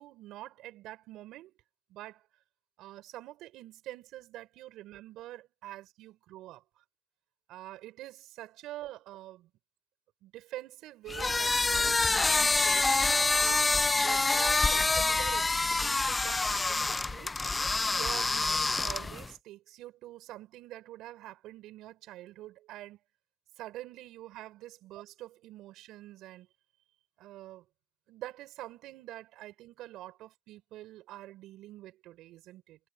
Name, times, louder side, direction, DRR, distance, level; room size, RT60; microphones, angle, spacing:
voice 1, 0.0-1.5 1.9-2.3 2.8-6.8 7.5-9.5 10.2-13.3 14.0-17.3 17.9-23.0 23.6-26.5 27.2-27.7 28.1-32.8, right 15 dB, 85° right, 6.9 m, -46 dB
sound 1, 11.1-19.3, left 3 dB, 20° left, 0.4 m, -27 dB
cardioid pair, 105°, 0 cm